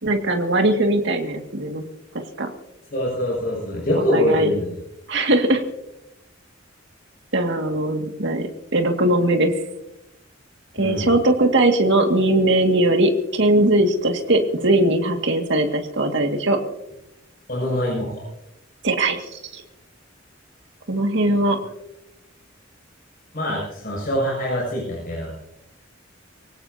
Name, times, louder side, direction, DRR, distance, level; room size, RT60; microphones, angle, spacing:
voice 1, 0.0-1.8 2.1-2.5 4.0-4.5 5.1-5.6 7.3-9.5 10.7-16.6 18.8-19.2 19.5-19.6 20.9-21.6, right 1 dB, 65° right, 4 dB, 2.1 m, -20 dB
voice 2, 2.9-4.7 10.8-11.1 17.5-18.2 21.2-21.4 23.3-25.3, left 1 dB, 50° left, -5 dB, 6.7 m, -24 dB
24.5 x 17.5 x 2.8 m, 0.89 s
head